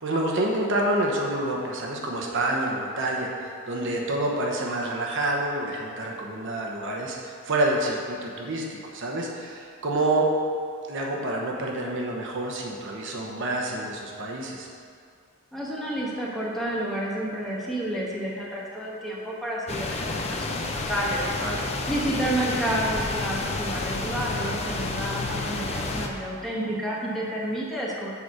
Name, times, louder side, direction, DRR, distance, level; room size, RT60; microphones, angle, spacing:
voice 1, 0.0-10.3 10.9-14.7 21.4-21.6, right 1 dB, 60° right, -1 dB, 1.0 m, -28 dB
voice 2, 15.5-21.2 21.9-28.1, right 1 dB, ahead, -6 dB, 1.2 m, -30 dB
sound 1, 19.7-26.1, left 3 dB, 30° left, 0.6 m, -30 dB
6.8 x 4.8 x 6.4 m, 2.3 s
head